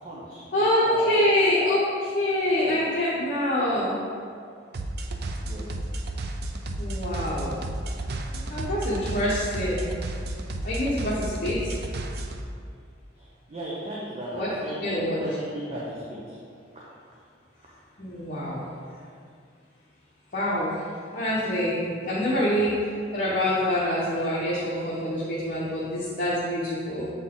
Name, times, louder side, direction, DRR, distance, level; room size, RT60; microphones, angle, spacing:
voice 1, 0.0-1.1 2.5-2.9 5.4-5.7 13.2-16.4, right 1 dB, 35° right, -7 dB, 0.8 m, -37 dB
voice 2, 0.5-4.0 6.8-7.6 8.5-9.8 10.6-11.8 14.3-14.5 14.8-15.4 18.0-18.6 20.3-20.8 21.1-22.8 23.1-27.1, left 1 dB, 50° left, -8 dB, 1.0 m, -25 dB
sound 1, 4.7-12.4, right 1 dB, 60° right, 0.5 m, -32 dB
7.4 x 4.0 x 3.8 m, 2.3 s
head